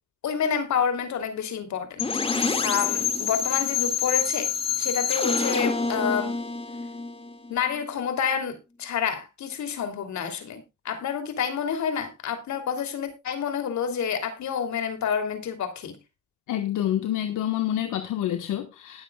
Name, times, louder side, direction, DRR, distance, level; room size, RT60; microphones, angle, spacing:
voice 1, 0.2-4.5 4.8-6.4 7.5-16.0, left 7 dB, 65° left, 3.2 m, -29 dB
sound 1, 2.0-7.8, left 5 dB, 20° left, 2.1 m, -27 dB
voice 2, 16.5-19.0, left 12 dB, 85° left, 1.5 m, -27 dB
20.5 x 7.9 x 2.4 m
cardioid pair, 90°, 30 cm